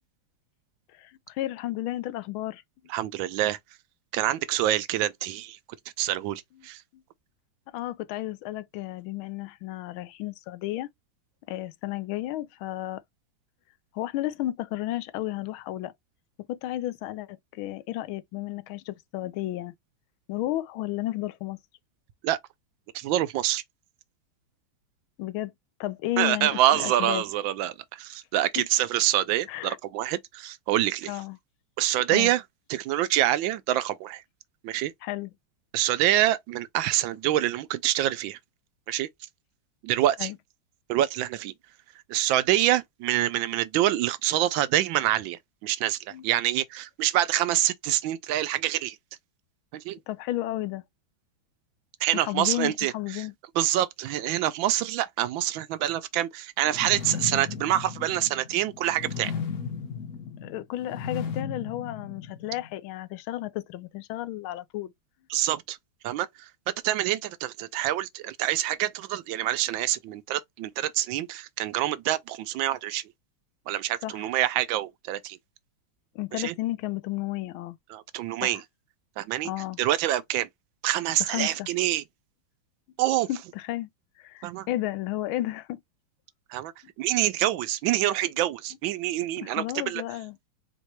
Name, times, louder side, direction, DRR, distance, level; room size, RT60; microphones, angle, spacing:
voice 1, 0.9-2.6 7.7-10.9 11.5-13.0 13.9-15.9 16.5-19.7 20.3-21.6 25.2-25.5 25.8-27.2 28.6-28.7 29.5-29.8 31.1-31.4 32.1-32.3 35.0-35.3 40.2-40.3 46.1-46.2 50.1-50.8 52.1-53.3 60.4-64.9 74.0-74.3 76.1-77.8 78.4-78.5 79.4-79.8 81.2-81.7 83.3-83.9 84.2-85.8 89.4-90.3, left 15 dB, 90° left, 1.5 m, -32 dB
voice 2, 2.9-3.6 4.1-5.6 6.0-6.8 22.2-22.4 22.9-23.6 26.2-31.2 31.8-32.4 32.7-34.2 34.6-34.9 35.7-38.4 38.9-39.1 39.8-40.3 40.9-41.5 42.1-49.0 49.7-50.0 52.0-53.3 53.5-59.3 65.3-65.8 66.0-73.0 73.7-75.4 76.3-76.5 77.9-78.6 79.2-79.5 79.8-80.5 80.8-82.0 83.0-83.3 84.4-84.7 86.5-86.7 87.0-90.0, right 13 dB, 80° right, 1.3 m, -26 dB
sound 1, 56.7-62.7, left 6 dB, 50° left, 1.0 m, -36 dB
4.6 x 3.0 x 3.0 m
omnidirectional pair, 2.2 m